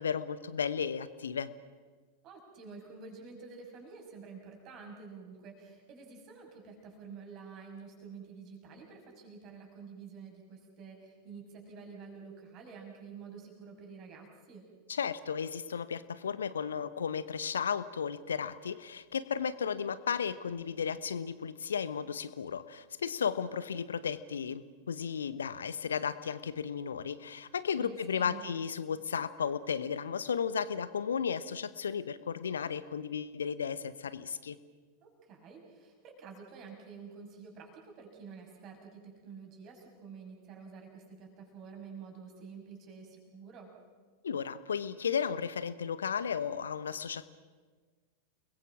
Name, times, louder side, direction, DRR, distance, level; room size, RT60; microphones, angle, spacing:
voice 1, 0.0-1.5 14.9-34.6 44.2-47.3, left 7 dB, 70° left, 15 dB, 1.0 m, -34 dB
voice 2, 2.2-14.6 27.8-28.5 35.0-43.7, right 5 dB, 35° right, 2 dB, 6.2 m, -49 dB
30.0 x 21.5 x 6.0 m, 1.5 s
figure-of-eight pair, 90°, 0 cm